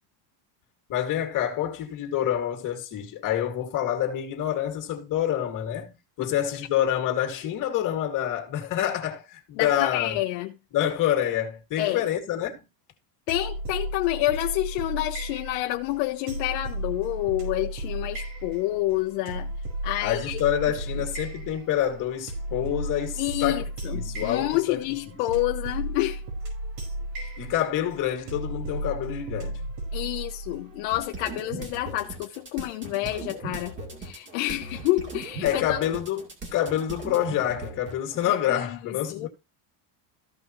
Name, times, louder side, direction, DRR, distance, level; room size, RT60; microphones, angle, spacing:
voice 1, 0.9-10.2 10.7-12.6 20.0-23.6 23.9-24.8 25.1-25.2 27.4-29.7 33.0-33.1 35.4-39.3, left 11 dB, 40° left, 2.4 m, -27 dB
voice 2, 9.6-10.5 11.8-12.1 13.3-19.5 19.8-20.4 23.2-26.2 29.9-35.8 38.3-39.3, left 17 dB, 75° left, 1.0 m, -28 dB
sound 1, 13.3-31.0, right 1 dB, 85° right, 5.0 m, -34 dB
sound 2, 30.9-38.3, right 3 dB, 25° right, 2.3 m, -39 dB
15.0 x 5.5 x 3.1 m
cardioid pair, 160°, 49 cm